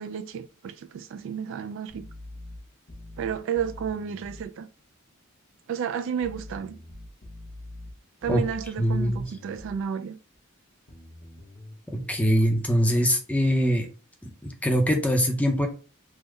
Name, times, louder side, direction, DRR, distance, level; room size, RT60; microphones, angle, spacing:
voice 1, 0.0-2.1 3.2-4.7 5.7-6.8 8.2-10.2, right 7 dB, 65° right, 0.3 m, -32 dB
sound 1, 1.9-4.5 6.2-9.8 10.9-12.5, left 1 dB, 50° left, 0.8 m, -44 dB
voice 2, 8.8-9.3 11.9-13.9 14.2-15.7, equal, 5° left, 0.6 m, -23 dB
3.5 x 2.1 x 3.2 m
head